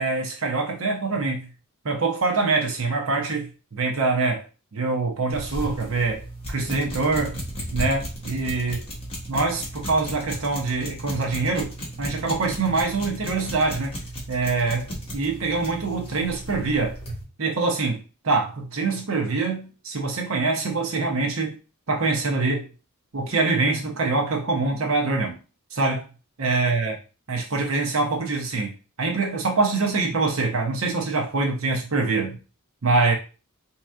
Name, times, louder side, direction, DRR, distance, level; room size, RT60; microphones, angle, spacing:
voice 1, 0.0-1.5 1.8-4.4 4.7-6.2 6.5-7.4 7.7-8.9 9.3-11.7 12.0-14.0 14.3-17.0 17.4-18.0 18.2-21.6 21.9-22.7 23.1-25.4 25.7-26.0 26.4-26.9 27.3-32.4 32.8-33.1, right 3 dB, 65° right, 0.8 m, -24 dB
sound 1, 5.3-17.2, equal, 25° left, 1.1 m, -35 dB
4.5 x 2.9 x 2.4 m
head